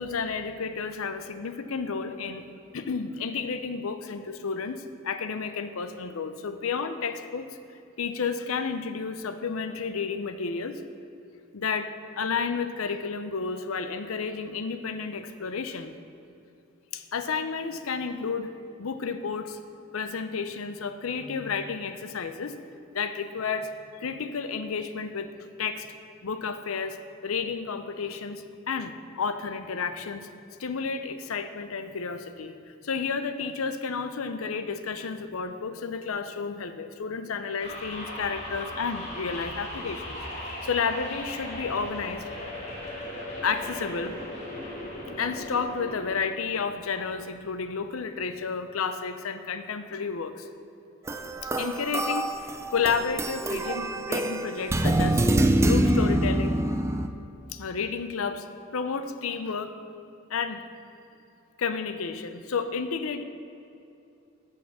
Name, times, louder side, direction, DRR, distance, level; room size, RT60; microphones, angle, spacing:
voice 1, 0.0-2.5 2.7-7.5 8.0-10.8 11.5-15.9 16.9-18.5 18.8-19.6 19.9-22.5 22.9-23.7 24.0-25.9 26.2-27.0 27.2-30.3 30.6-32.6 32.8-42.3 43.4-44.1 45.2-50.5 51.4-52.3 52.7-55.2 55.6-56.6 57.5-58.5 58.7-59.7 60.3-60.6 61.6-63.2, left 5 dB, 80° left, 9 dB, 0.6 m, -31 dB
sound 1, 37.6-46.2, left 1 dB, 35° left, 1.8 m, -38 dB
sound 2, 51.1-57.1, right 1 dB, 15° right, 0.3 m, -25 dB
8.4 x 6.6 x 6.2 m, 2.7 s
head